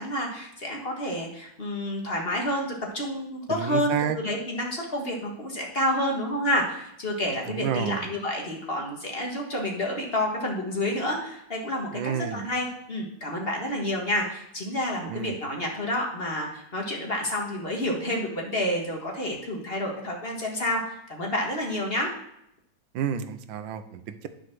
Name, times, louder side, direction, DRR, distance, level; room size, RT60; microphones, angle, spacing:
voice 1, 0.0-22.1, left 1 dB, 30° left, 0 dB, 1.9 m, -29 dB
voice 2, 3.5-4.2 7.4-8.1 11.9-12.5 15.1-15.4 22.9-24.3, right 8 dB, 90° right, 11 dB, 1.5 m, -30 dB
10.5 x 5.1 x 6.1 m, 0.77 s
omnidirectional pair, 2.0 m